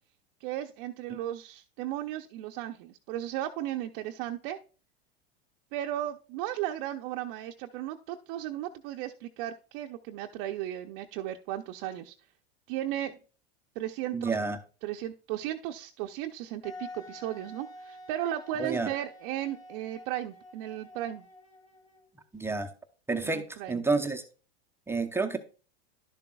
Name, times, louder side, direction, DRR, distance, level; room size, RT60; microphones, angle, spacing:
voice 1, 0.4-4.6 5.7-12.1 12.7-13.2 13.8-14.3 14.8-21.3 23.3-23.8, right 12 dB, 55° right, 3 dB, 0.6 m, -35 dB
voice 2, 14.1-14.6 18.6-18.9 22.3-22.7 23.1-24.2 24.9-25.4, right 3 dB, 10° right, 5 dB, 0.7 m, -29 dB
Wind instrument woodwind instrument, 16.6-22.2, left 2 dB, 20° left, 3.4 m, -49 dB
11.5 x 6.8 x 2.3 m, 0.37 s
hypercardioid pair, 105°, 32 cm